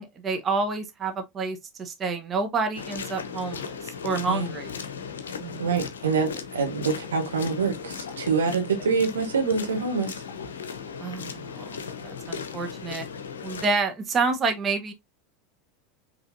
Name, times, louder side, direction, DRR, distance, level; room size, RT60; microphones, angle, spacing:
voice 1, 0.0-4.7 5.4-5.6 11.0-11.7 12.0-13.1 13.4-14.9, right 4 dB, 30° right, 1.0 m, -28 dB
sound 1, 2.7-13.7, left 6 dB, 80° left, 0.7 m, -37 dB
voice 2, 5.6-10.2, right 5 dB, 80° right, 1.2 m, -26 dB
5.0 x 3.2 x 2.6 m
hypercardioid pair, 85°, 0 cm